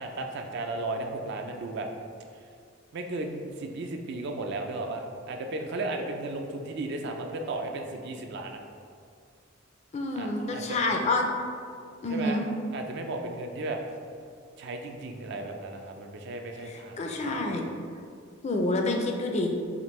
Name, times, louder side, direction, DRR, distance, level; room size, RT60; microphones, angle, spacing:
voice 1, 0.0-1.9 2.9-8.6 10.2-10.8 12.1-12.4 12.7-13.8 14.6-17.5, right 2 dB, 55° right, 3 dB, 0.4 m, -35 dB
voice 2, 9.9-11.2 12.0-12.4 16.7-17.6 18.4-19.5, left 2 dB, 35° left, 2 dB, 0.4 m, -28 dB
5.1 x 2.8 x 3.1 m, 2.3 s
head